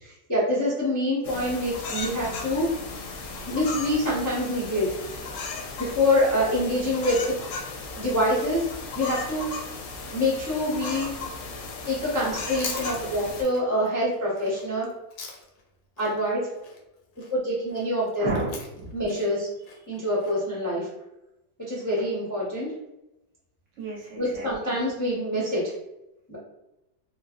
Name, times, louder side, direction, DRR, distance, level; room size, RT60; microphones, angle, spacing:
voice 1, 0.0-4.9 5.2-5.4 5.8-7.2 7.9-8.7 8.9-9.5 10.1-11.1 11.9-14.9 16.0-16.5 17.3-18.3 18.9-19.5 19.9-20.9 21.7-22.7 24.1-25.7 26.3-26.4, left 1 dB, 25° left, -7 dB, 0.4 m, -26 dB
sound 1, 1.2-13.4, left 3 dB, 70° left, 0.8 m, -36 dB
Chewing mastication, 12.2-15.7 16.0-20.3, left 4 dB, 90° left, 1.1 m, -41 dB
voice 2, 18.2-18.9 23.8-24.8, right 3 dB, 65° right, -3 dB, 0.9 m, -32 dB
3.2 x 2.0 x 2.4 m, 0.91 s
omnidirectional pair, 1.6 m